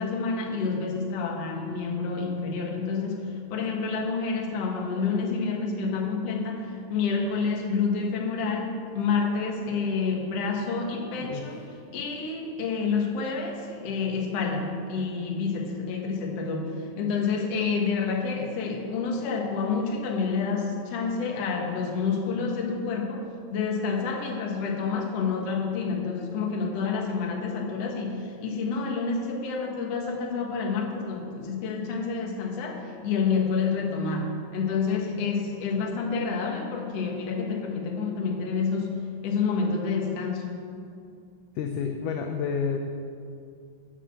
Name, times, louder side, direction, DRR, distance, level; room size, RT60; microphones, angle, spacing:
voice 1, 0.0-11.6 11.9-39.0 39.2-40.5, left 5 dB, 55° left, 1 dB, 2.0 m, -28 dB
voice 2, 11.2-11.6 41.6-42.8, left 6 dB, 75° left, 4 dB, 2.0 m, -29 dB
11.5 x 6.7 x 7.4 m, 2.3 s
omnidirectional pair, 4.2 m